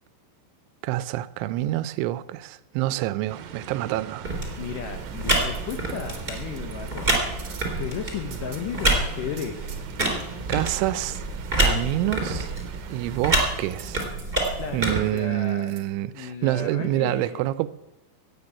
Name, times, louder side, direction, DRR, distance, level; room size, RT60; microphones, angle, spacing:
voice 1, 0.8-4.3 10.5-11.3 11.6-12.5 12.9-14.0 14.7-17.7, right 15 dB, 85° right, 3.1 m, -27 dB
sound 1, 3.3-13.2, right 8 dB, 70° right, 2.2 m, -42 dB
sound 2, 4.2-15.0, right 2 dB, 15° right, 2.4 m, -27 dB
voice 2, 4.6-9.7 14.6-15.8 16.1-17.4, left 8 dB, 80° left, 1.8 m, -35 dB
sound 3, 5.3-6.9 7.4-9.0 9.4-10.3 13.7-15.8 16.3-16.4, right 6 dB, 55° right, 1.7 m, -46 dB
16.5 x 6.8 x 9.6 m
omnidirectional pair, 5.4 m